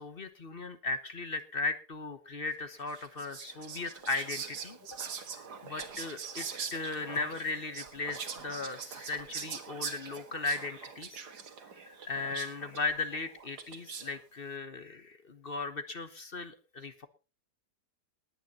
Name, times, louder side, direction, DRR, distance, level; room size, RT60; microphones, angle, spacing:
voice 1, 0.0-5.0 5.6-11.2 11.8-17.1, left 3 dB, 40° left, 11 dB, 1.2 m, -37 dB
Whispering, 2.9-14.2, right 6 dB, 75° right, 2.1 m, -43 dB
19.5 x 9.1 x 4.2 m, 0.32 s
omnidirectional pair, 1.7 m